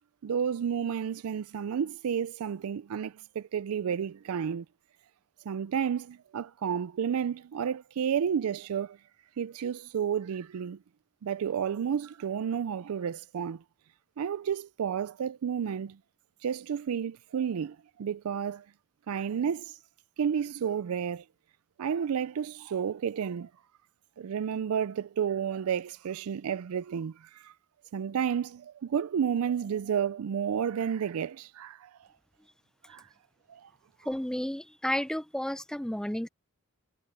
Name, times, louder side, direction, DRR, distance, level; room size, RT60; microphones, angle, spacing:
voice 1, 0.2-4.7 5.5-9.0 9.4-10.8 11.2-13.6 14.2-16.0 16.4-18.7 19.1-19.8 20.2-21.2 21.8-23.5 24.2-27.5 27.9-32.1 32.9-33.1 33.5-33.7, right 8 dB, 80° right, 0.4 m, -31 dB
voice 2, 34.1-36.3, left 1 dB, 5° left, 0.4 m, -32 dB
head